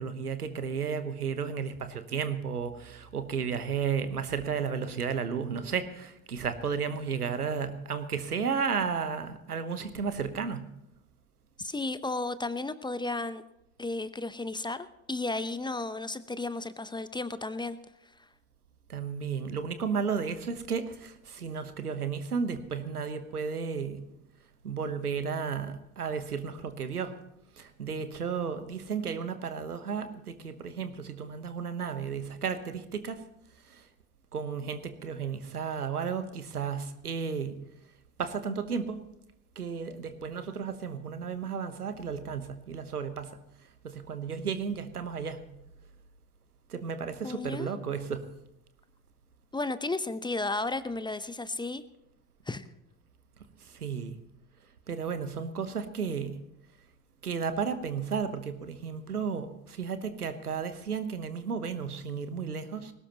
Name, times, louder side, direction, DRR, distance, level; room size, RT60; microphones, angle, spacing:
voice 1, 0.0-10.6 18.9-24.0 24.6-27.1 27.6-33.2 33.7-33.8 34.3-37.6 38.2-39.0 39.6-43.4 43.8-45.4 46.7-48.2 53.7-54.1 54.9-56.4 57.2-62.9, right 6 dB, 90° right, 10 dB, 1.2 m, -33 dB
voice 2, 11.6-13.4 13.8-17.8 47.2-47.7 49.5-51.8 52.5-52.6, left 2 dB, 10° left, 14 dB, 0.8 m, -33 dB
20.5 x 17.5 x 3.0 m, 0.83 s
figure-of-eight pair, 70°, 44 cm